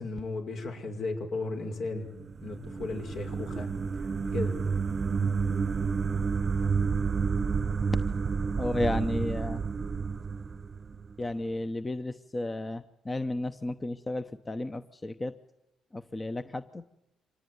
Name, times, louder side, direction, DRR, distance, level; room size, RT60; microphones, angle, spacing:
voice 1, 0.0-2.1 2.4-3.7 4.3-4.6 8.6-8.7, left 3 dB, 65° left, 5 dB, 5.6 m, -35 dB
sound 1, 2.0-11.3, right 5 dB, 40° right, 0.9 m, -30 dB
voice 2, 8.6-9.6 11.2-15.3 15.9-16.8, left 2 dB, 20° left, 11 dB, 0.9 m, -33 dB
25.5 x 18.5 x 9.7 m, 0.87 s
cardioid pair, 90°, 0 cm